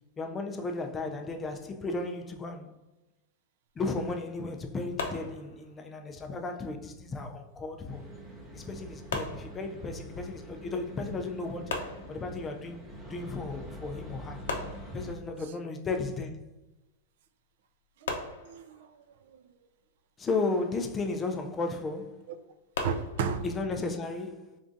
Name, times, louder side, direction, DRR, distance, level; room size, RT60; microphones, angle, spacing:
voice 1, 0.2-2.7 3.8-8.0 8.5-11.8 12.1-12.8 13.1-14.4 14.9-16.3 20.2-22.3 23.4-24.6, left 3 dB, 15° left, 0.4 m, -34 dB
sound 1, 5.0-5.9 9.1-10.2 11.7-12.7 14.5-15.5 18.1-19.1 22.7-23.3, left 3 dB, 85° left, 0.6 m, -38 dB
sound 2, 7.9-15.1, equal, 15° right, 0.7 m, -45 dB
voice 2, 18.0-19.5 22.8-23.5, right 6 dB, 65° right, 0.4 m, -35 dB
3.7 x 3.5 x 2.6 m
supercardioid pair, 150°, 0 cm